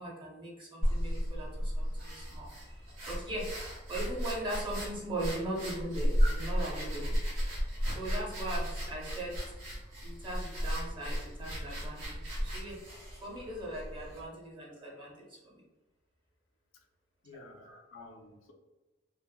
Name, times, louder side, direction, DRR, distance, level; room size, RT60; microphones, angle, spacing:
voice 1, 0.0-3.5 3.9-7.1 7.9-9.5 10.0-12.8 13.2-15.6 17.3-17.8, right 1 dB, 25° right, -3 dB, 0.7 m, -40 dB
sound 1, 0.8-14.3, equal, 70° right, 0.9 m, -34 dB
voice 2, 17.2-18.5, left 3 dB, 75° left, 2 dB, 0.4 m, -52 dB
3.3 x 2.0 x 2.2 m, 1.1 s
head